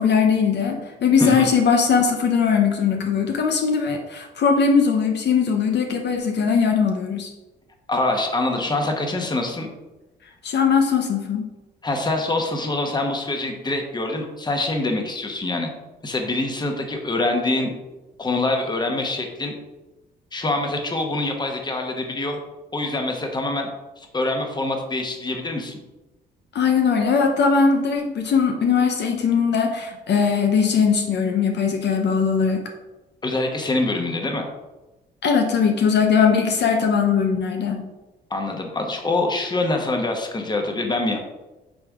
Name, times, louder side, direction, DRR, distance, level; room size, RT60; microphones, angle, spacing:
voice 1, 0.0-7.3 10.4-11.4 26.5-32.6 35.2-37.8, left 6 dB, 60° left, 3 dB, 0.8 m, -20 dB
voice 2, 1.2-1.5 7.9-9.7 11.8-15.7 16.0-17.7 18.2-19.5 20.3-22.4 22.7-23.7 24.0-25.8 33.2-34.5 38.3-41.2, left 2 dB, 20° left, 3 dB, 1.1 m, -25 dB
8.8 x 3.4 x 3.6 m, 1.1 s
cardioid pair, 90°, 20 cm